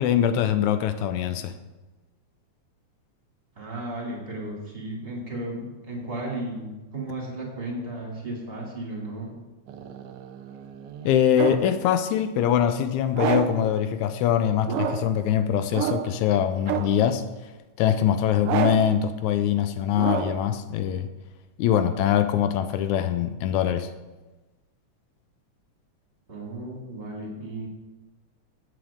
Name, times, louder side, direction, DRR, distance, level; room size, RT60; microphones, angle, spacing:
voice 1, 0.0-1.5 11.1-17.2 17.8-21.1 21.6-23.9, left 9 dB, 80° left, 10 dB, 2.0 m, -23 dB
voice 2, 3.6-9.4 26.3-27.7, right 1 dB, 20° right, -2 dB, 2.3 m, -34 dB
sound 1, 9.7-11.8 13.1-13.7 14.6-15.2 15.7-16.2 16.7-17.1 18.4-19.0 19.9-20.5, right 8 dB, 80° right, 1.3 m, -29 dB
15.5 x 7.7 x 3.6 m, 1.1 s
omnidirectional pair, 3.4 m